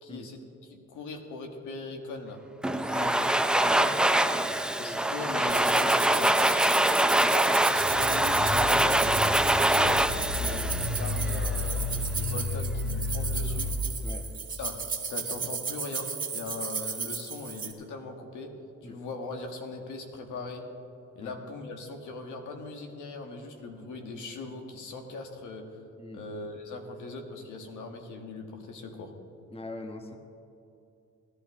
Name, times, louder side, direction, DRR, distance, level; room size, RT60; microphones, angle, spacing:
voice 1, 0.0-2.4 2.7-4.4 4.8-6.7 7.1-9.0 9.5-10.1 10.5-13.7 14.6-14.8 15.1-18.5 18.8-20.6 21.1-25.8 26.1-29.1, left 3 dB, 80° left, 3 dB, 1.7 m, -40 dB
Domestic sounds home sounds, 2.6-11.5, right 1 dB, 5° right, 0.4 m, -24 dB
sound 1, 5.5-17.7, right 5 dB, 25° right, 1.8 m, -35 dB
sound 2, 7.7-13.8, left 3 dB, 55° left, 1.6 m, -32 dB
voice 2, 29.5-30.2, left 1 dB, 20° left, 5 dB, 1.2 m, -41 dB
19.0 x 11.5 x 3.7 m, 2.7 s
cardioid pair, 90°, 30 cm